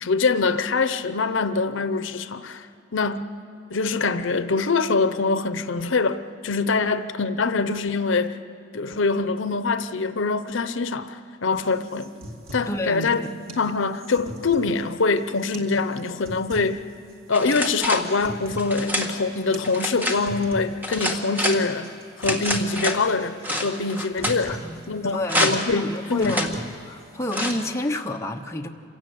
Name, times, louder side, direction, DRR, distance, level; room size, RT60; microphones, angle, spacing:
voice 1, 0.0-2.7 2.9-3.3 3.7-8.4 8.7-12.1 12.5-13.2 13.6-16.8 17.3-21.9 22.2-24.6 24.9-26.4, left 4 dB, 75° left, 11 dB, 0.8 m, -24 dB
sound 1, 11.5-27.5, right 1 dB, 85° right, 2.4 m, -41 dB
voice 2, 12.7-13.3 24.5-26.6 26.8-28.7, left 1 dB, 15° left, 2 dB, 1.0 m, -30 dB
sound 2, 17.3-18.1 18.6-19.1 19.6-20.2 20.8-21.6 22.2-23.0 23.4-24.4 25.2-25.7 26.2-26.5 27.3-27.7, left 1 dB, 10° right, 1.6 m, -27 dB
27.0 x 17.0 x 7.8 m, 2.8 s
head